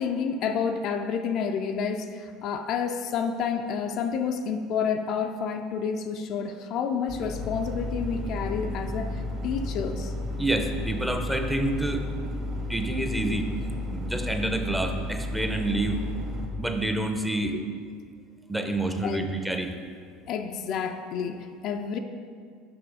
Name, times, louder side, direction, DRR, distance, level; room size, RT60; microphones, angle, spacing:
voice 1, 0.0-10.1 17.5-17.6 19.0-19.3 20.3-22.0, left 6 dB, 50° left, 6 dB, 0.4 m, -29 dB
sound 1, 7.1-16.5, left 1 dB, 40° right, 1.7 m, -33 dB
voice 2, 10.4-12.0 12.7-13.5 13.9-16.0 16.6-17.5 18.5-19.7, right 1 dB, 5° right, 5 dB, 0.7 m, -28 dB
6.1 x 5.9 x 4.8 m, 2.1 s
figure-of-eight pair, 70°, 0 cm